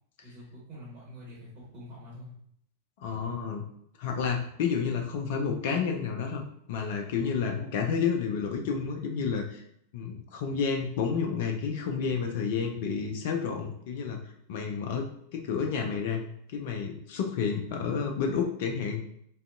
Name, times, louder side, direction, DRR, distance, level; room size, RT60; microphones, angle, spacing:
voice 1, 0.2-2.3, equal, 40° right, -7 dB, 1.1 m, -46 dB
voice 2, 3.0-3.6 4.0-6.4 6.7-9.6 9.9-14.2 14.5-16.2 16.5-19.0, left 6 dB, 50° left, 3 dB, 0.4 m, -30 dB
2.5 x 2.3 x 2.4 m, 0.70 s
figure-of-eight pair, 90°, 0 cm